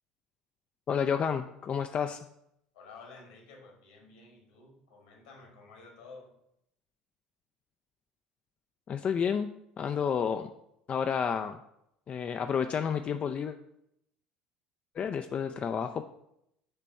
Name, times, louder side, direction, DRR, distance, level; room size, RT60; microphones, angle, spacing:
voice 1, 0.9-2.2 8.9-9.5 9.8-10.5 10.9-11.6 12.1-13.6 15.0-16.0, left 7 dB, 35° left, 8 dB, 0.3 m, -30 dB
voice 2, 2.7-6.3, left 3 dB, 70° left, 1 dB, 1.8 m, -52 dB
7.7 x 3.0 x 5.5 m, 0.78 s
figure-of-eight pair, 65°, 4 cm